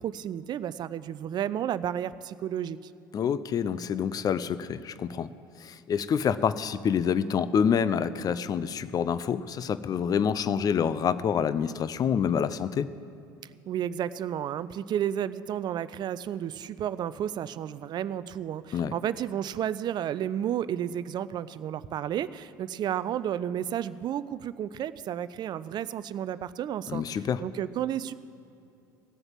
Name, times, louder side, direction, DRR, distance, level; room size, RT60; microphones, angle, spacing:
voice 1, 0.0-2.8 13.7-28.1, right 10 dB, 40° right, 16 dB, 0.5 m, -32 dB
voice 2, 3.1-5.3 5.6-12.9 18.7-18.9 26.9-27.4, left 7 dB, 35° left, 15 dB, 0.6 m, -27 dB
17.0 x 7.8 x 7.4 m, 2.8 s
figure-of-eight pair, 65°, 11 cm